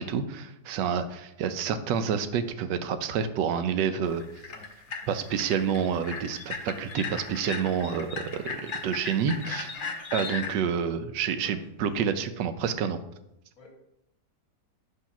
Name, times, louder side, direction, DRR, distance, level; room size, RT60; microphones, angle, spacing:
voice 1, 0.0-4.2 5.1-9.8 10.1-13.0, right 7 dB, 85° right, 10 dB, 1.2 m, -28 dB
sound 1, 4.0-10.5, left 5 dB, 80° left, 0.4 m, -37 dB
voice 2, 4.5-5.1 9.8-10.7 11.4-12.1 13.6-13.7, left 1 dB, 55° left, -3 dB, 1.8 m, -49 dB
8.1 x 2.8 x 5.8 m, 0.83 s
omnidirectional pair, 1.8 m